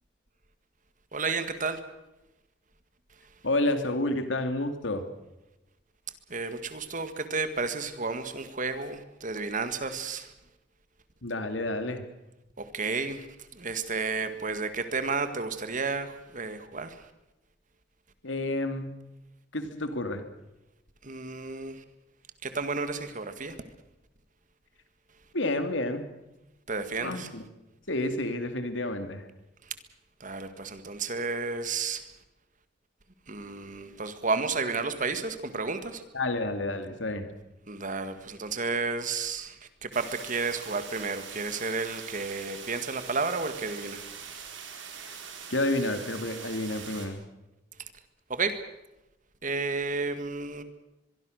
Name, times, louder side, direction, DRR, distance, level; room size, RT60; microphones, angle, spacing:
voice 1, 1.1-1.8 6.3-10.3 12.6-13.3 13.5-17.0 21.0-21.8 22.4-23.6 26.7-27.3 30.2-32.1 33.3-36.0 37.7-44.0 47.8-47.9 48.3-48.6 49.4-50.6, right 4 dB, 45° right, 10 dB, 1.9 m, -32 dB
voice 2, 3.4-5.1 11.2-12.1 18.2-18.9 19.5-20.3 25.3-26.0 27.0-27.4 27.9-29.3 36.1-37.3 45.1-45.2 45.5-47.2, left 2 dB, 85° left, 8 dB, 2.5 m, -30 dB
sound 1, 39.9-47.1, right 6 dB, 85° right, 4.3 m, -43 dB
23.0 x 23.0 x 6.5 m, 0.97 s
head